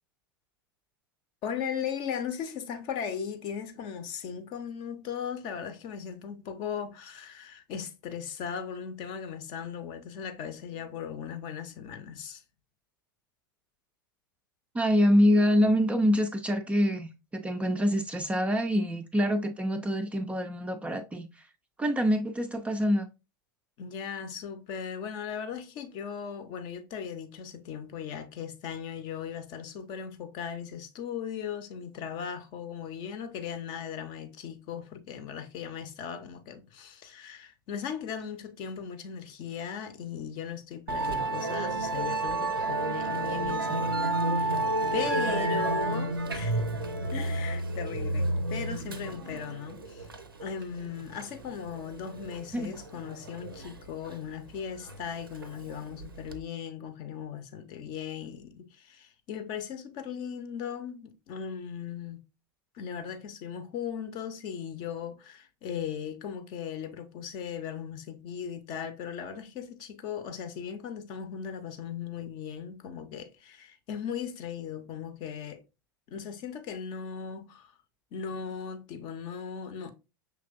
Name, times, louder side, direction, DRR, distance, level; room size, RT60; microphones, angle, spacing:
voice 1, 1.4-12.4 23.8-44.1 44.4-44.6 44.9-46.6 47.1-50.1 50.4-62.2 62.7-75.6 76.1-77.7 78.1-79.9, left 7 dB, 40° left, 0.6 m, -38 dB
voice 2, 14.7-21.3 21.8-23.1 52.5-52.7, equal, 10° right, 0.4 m, -25 dB
Musical instrument, 40.9-56.4, right 2 dB, 80° right, 0.5 m, -31 dB
5.8 x 3.3 x 2.4 m
figure-of-eight pair, 85°, 12 cm